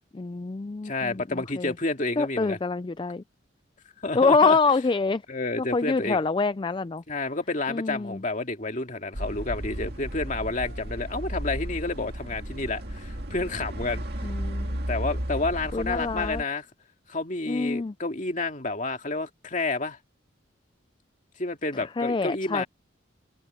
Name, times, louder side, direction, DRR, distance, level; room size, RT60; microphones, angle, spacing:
voice 1, 0.1-1.7 2.2-3.2 4.1-5.2 5.6-7.0 7.7-8.2 14.2-14.8 15.7-16.4 17.5-17.9 21.7-22.6, left 4 dB, 25° left, 0.3 m, -26 dB
voice 2, 0.8-2.6 4.0-4.6 5.3-6.2 7.1-14.0 14.9-16.7 17.1-20.0 21.4-22.7, left 3 dB, 40° left, 2.2 m, -30 dB
sound 1, 9.1-16.4, right 1 dB, 55° right, 2.1 m, -34 dB
open air
head